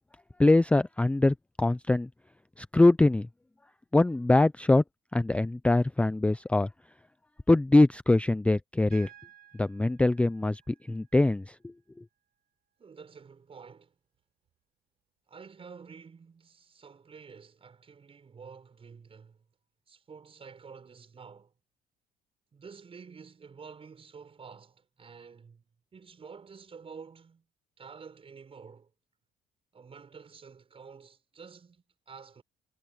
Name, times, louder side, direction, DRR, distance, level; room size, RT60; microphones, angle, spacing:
voice 1, 0.4-2.1 2.6-3.3 3.9-4.8 5.1-6.7 7.5-9.1 9.6-11.7, left 2 dB, 5° left, 0.5 m, -23 dB
Piano, 8.9-12.9 14.5-14.6, right 11 dB, 60° right, 6.7 m, -58 dB
voice 2, 12.8-13.9 15.3-19.4 19.9-21.5 22.5-27.5 27.8-28.9 29.7-32.4, right 5 dB, 35° right, 6.8 m, -49 dB
cardioid pair, 110°, 17 cm